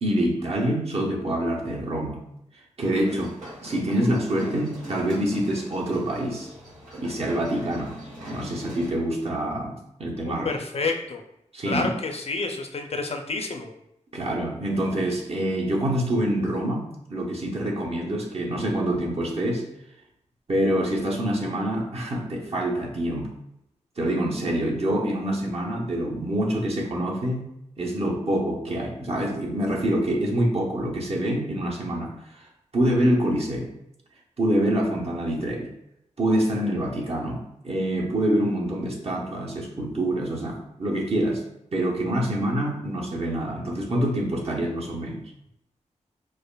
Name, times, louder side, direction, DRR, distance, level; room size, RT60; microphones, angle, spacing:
voice 1, 0.0-2.2 2.8-6.5 7.0-8.0 8.3-10.5 11.5-11.9 14.1-19.7 20.5-23.4 24.0-27.5 27.8-32.1 32.7-33.7 34.4-35.7 36.2-41.4 41.7-45.2, right 1 dB, 50° right, -1 dB, 0.9 m, -26 dB
sound 1, 3.0-8.9, equal, 90° right, 1.4 m, -41 dB
voice 2, 10.3-11.2 11.6-13.7, left 3 dB, 50° left, 4 dB, 0.5 m, -29 dB
4.9 x 2.5 x 2.2 m, 0.80 s
wide cardioid pair, 65°, 13 cm